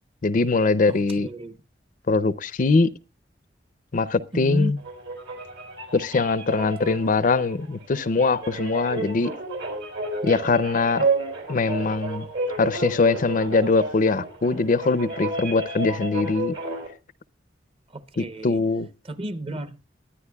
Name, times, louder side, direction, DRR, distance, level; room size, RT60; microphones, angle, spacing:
voice 1, 0.2-1.3 2.1-2.9 3.9-4.8 5.9-9.3 10.2-11.1 11.5-12.3 12.5-16.6 18.2-18.9, left 3 dB, 45° left, 0.5 m, -22 dB
voice 2, 0.9-1.6 4.3-4.8 17.9-18.6 19.0-19.8, right 1 dB, 30° right, 0.8 m, -33 dB
sound 1, 4.8-16.9, right 2 dB, 70° right, 4.0 m, -31 dB
23.0 x 10.0 x 2.3 m
head